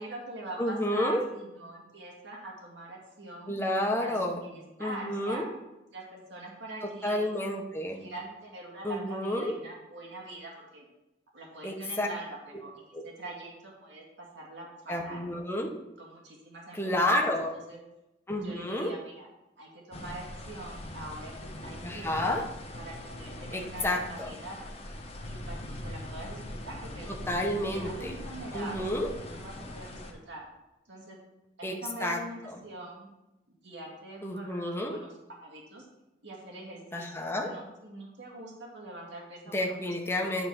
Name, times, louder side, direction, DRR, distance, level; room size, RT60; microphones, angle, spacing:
voice 1, 0.0-3.5 4.0-5.5 5.9-7.3 7.9-10.9 11.3-15.3 16.0-17.3 17.7-17.8 18.4-19.3 19.6-22.4 22.7-24.6 25.2-27.1 27.6-28.9 29.2-30.4 30.9-31.2 31.6-33.1 33.5-35.1 35.4-35.9 36.2-40.5, right 2 dB, 90° right, -2 dB, 2.1 m, -43 dB
voice 2, 0.6-1.2 3.5-4.4 4.8-5.4 7.0-8.1 8.8-9.5 11.6-12.1 12.9-13.0 14.9-15.7 16.7-17.6 18.3-18.9 21.8-22.4 23.5-24.3 27.3-28.1 28.5-29.1 31.6-32.2 34.2-35.0 36.9-37.5 39.5-40.5, left 1 dB, 15° left, 2 dB, 1.0 m, -30 dB
sound 1, 19.9-30.1, left 1 dB, 35° left, 1.1 m, -42 dB
10.0 x 4.0 x 5.9 m, 0.95 s
head